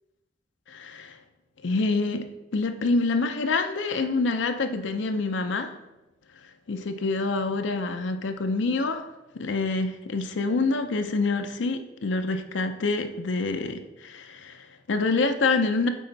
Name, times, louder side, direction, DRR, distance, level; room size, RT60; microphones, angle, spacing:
voice 1, 0.7-1.2 1.6-5.8 6.7-9.1 9.3-15.9, left 3 dB, 85° left, 7 dB, 0.5 m, -26 dB
8.3 x 4.3 x 3.9 m, 0.97 s
head